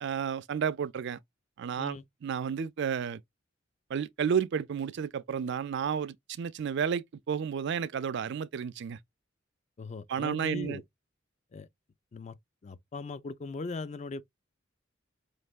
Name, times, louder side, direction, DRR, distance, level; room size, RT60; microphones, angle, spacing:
voice 1, 0.0-1.2 1.6-2.0 2.2-3.2 3.9-9.0 10.1-10.8, right 7 dB, 60° right, 0.4 m, -31 dB
voice 2, 9.8-10.8 11.5-11.7 12.1-12.4 12.6-14.2, left 3 dB, 35° left, 0.4 m, -39 dB
5.1 x 3.2 x 2.4 m
head